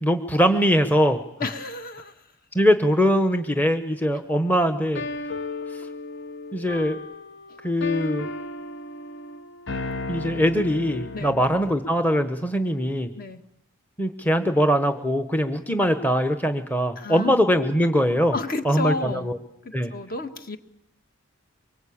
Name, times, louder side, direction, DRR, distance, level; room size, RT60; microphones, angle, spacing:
voice 1, 0.0-1.2 2.5-5.0 5.7-5.8 6.5-7.0 7.6-8.3 10.1-13.1 14.0-18.3 18.6-19.4 19.7-19.9, equal, 10° left, 8 dB, 1.0 m, -22 dB
voice 2, 1.4-2.3 7.5-7.6 11.1-11.4 13.2-13.4 17.0-17.4 18.3-19.3 19.6-20.6, left 3 dB, 45° left, 7 dB, 1.8 m, -31 dB
sound 1, 4.9-11.9, left 2 dB, 60° left, 1.0 m, -35 dB
24.0 x 24.0 x 8.6 m, 0.78 s
head